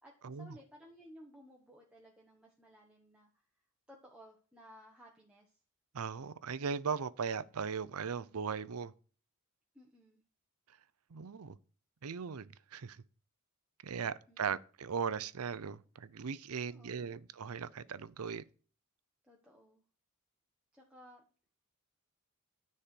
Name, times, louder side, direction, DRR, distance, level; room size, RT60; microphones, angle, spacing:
voice 1, 0.0-3.3 3.9-5.6 9.7-10.2 14.3-14.4 16.7-17.2 19.2-19.8 20.7-21.2, equal, 5° right, 1.1 m, -58 dB
voice 2, 5.9-8.9 11.1-11.6 12.0-12.5 12.7-13.0 13.8-18.4, right 6 dB, 75° right, 0.6 m, -38 dB
10.0 x 4.3 x 7.6 m
head